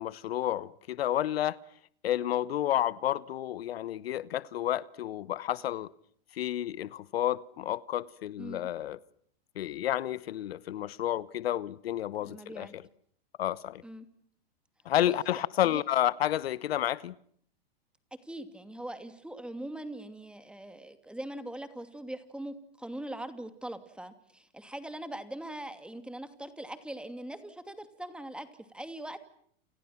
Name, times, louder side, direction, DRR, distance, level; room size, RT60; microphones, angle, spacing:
voice 1, 0.0-1.6 2.0-5.9 6.3-9.0 9.6-12.8 13.4-13.8 14.8-17.1, left 12 dB, 80° left, 1.1 m, -30 dB
voice 2, 8.4-8.7 12.2-12.7 13.8-14.1 15.1-15.2 15.6-15.8 18.2-29.2, right 1 dB, 5° right, 2.7 m, -41 dB
30.0 x 29.5 x 6.0 m
hypercardioid pair, 120°, 30 cm